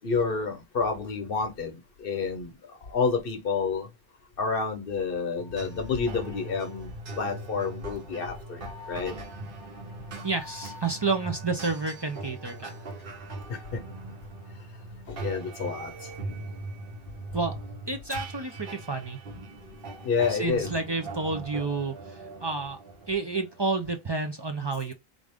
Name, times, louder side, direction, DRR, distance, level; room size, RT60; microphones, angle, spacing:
voice 1, 0.0-3.9 4.4-9.1 13.5-13.8 15.1-16.1 20.0-20.7, left 5 dB, 65° left, 1.0 m, -29 dB
sound 1, 5.4-24.1, right 2 dB, 60° right, 1.1 m, -40 dB
voice 2, 10.2-12.7 17.3-17.5 17.9-19.2 20.3-22.8 23.1-24.9, right 3 dB, 35° right, 0.4 m, -30 dB
3.6 x 2.6 x 3.4 m
omnidirectional pair, 1.1 m